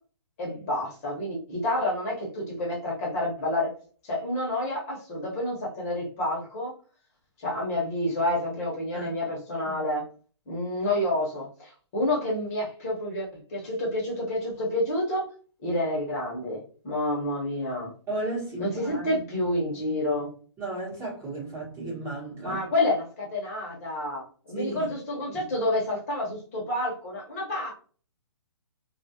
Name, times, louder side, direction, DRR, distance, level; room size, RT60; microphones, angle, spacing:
voice 1, 0.4-3.7 4.0-6.7 7.4-10.0 10.5-15.2 15.6-17.9 18.6-20.3 22.4-27.7, left 1 dB, 30° left, -3 dB, 0.9 m, -29 dB
voice 2, 18.1-19.5 20.6-22.6 24.5-24.8, right 2 dB, 15° right, -5 dB, 1.1 m, -34 dB
2.4 x 2.2 x 2.7 m, 0.41 s
hypercardioid pair, 150°, 15 cm